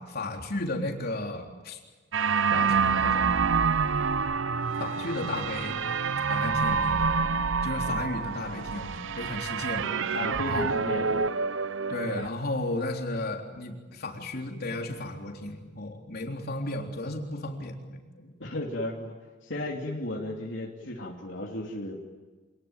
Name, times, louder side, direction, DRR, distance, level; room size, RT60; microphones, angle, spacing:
voice 1, 0.0-1.8 2.5-3.4 4.8-5.8 6.2-7.1 7.6-10.2 10.5-10.7 11.9-18.0, left 2 dB, 55° left, 2 dB, 3.7 m, -34 dB
sound 1, 2.1-12.3, right 5 dB, 85° right, 0.7 m, -27 dB
voice 2, 10.1-11.3 18.2-19.1 19.4-22.0, left 1 dB, 75° left, -1 dB, 3.0 m, -34 dB
27.0 x 20.0 x 9.1 m, 1.3 s
head